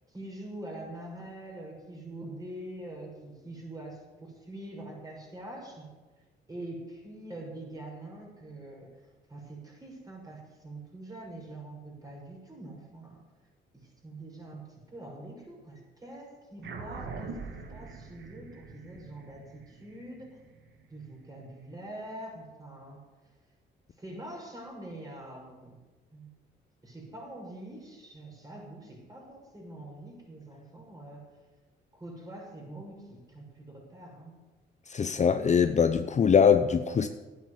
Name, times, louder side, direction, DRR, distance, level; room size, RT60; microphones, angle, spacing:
voice 1, 0.1-5.9 6.5-13.2 13.7-20.4 20.9-23.0 24.0-25.8 26.1-26.3 26.8-31.2 31.9-34.5, right 1 dB, 20° right, -1 dB, 6.0 m, -44 dB
sound 1, 16.6-21.4, right 4 dB, 65° right, 2.0 m, -43 dB
voice 2, 34.9-37.1, left 7 dB, 35° left, 9 dB, 0.7 m, -22 dB
11.5 x 9.4 x 8.3 m, 1.3 s
cardioid pair, 90°, 20 cm